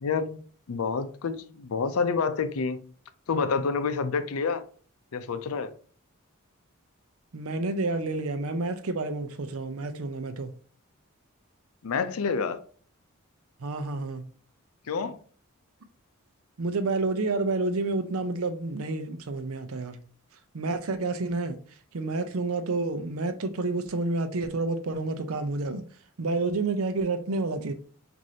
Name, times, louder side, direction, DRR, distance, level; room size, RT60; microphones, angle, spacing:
voice 1, 0.0-2.9 3.3-4.6 5.1-5.7 11.8-12.6 14.9-15.2, left 5 dB, 75° left, 0.5 m, -28 dB
voice 2, 7.3-10.5 13.6-14.2 16.6-20.0 20.5-21.6 21.9-25.8 26.2-27.7, right 3 dB, 70° right, 0.6 m, -29 dB
6.2 x 2.7 x 2.7 m
head